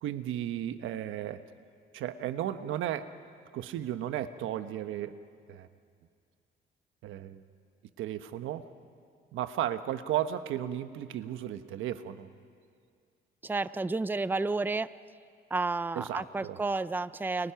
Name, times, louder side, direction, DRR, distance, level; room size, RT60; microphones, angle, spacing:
voice 1, 0.0-1.4 1.9-3.1 3.5-5.2 5.5-5.7 7.0-7.4 8.0-8.7 9.3-12.3 15.9-16.6, right 11 dB, 85° right, 11 dB, 1.1 m, -34 dB
voice 2, 13.4-14.9 15.5-17.5, right 3 dB, 10° right, 15 dB, 0.6 m, -31 dB
30.0 x 29.5 x 5.9 m, 2.2 s
cardioid pair, 90°, 20 cm